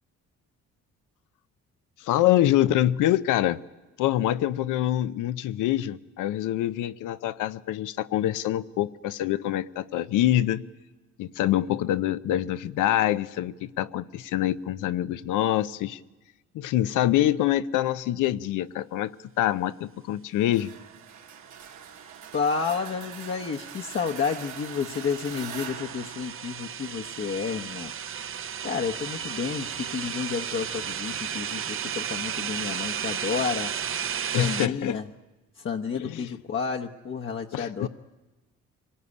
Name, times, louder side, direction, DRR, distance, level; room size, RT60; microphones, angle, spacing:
voice 1, 2.0-3.6 4.0-10.6 11.2-16.0 16.5-19.1 19.4-20.7 34.3-35.0 35.9-36.3 37.5-37.9, left 13 dB, 90° left, 14 dB, 0.8 m, -25 dB
sound 1, 20.5-27.2, right 8 dB, 70° right, 1.7 m, -43 dB
sound 2, 22.1-34.7, right 8 dB, 45° right, 0.7 m, -34 dB
voice 2, 22.3-27.9 28.6-33.7 34.3-35.1 35.5-37.9, left 6 dB, 45° left, 2 dB, 1.0 m, -31 dB
25.5 x 18.0 x 9.8 m, 1.2 s
cardioid pair, 90°, 30 cm